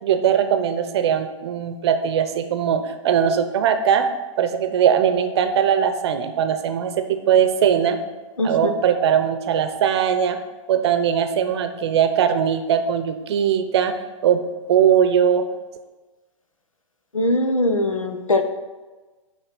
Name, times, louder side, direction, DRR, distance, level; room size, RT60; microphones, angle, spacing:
voice 1, 0.0-4.1 4.4-8.0 8.4-10.4 10.7-13.9 14.2-14.4 14.7-15.4, right 8 dB, 55° right, 8 dB, 0.7 m, -20 dB
voice 2, 8.4-8.7 17.1-18.4, left 1 dB, 90° left, 7 dB, 0.8 m, -21 dB
8.7 x 3.1 x 5.9 m, 1.2 s
figure-of-eight pair, 110°, 17 cm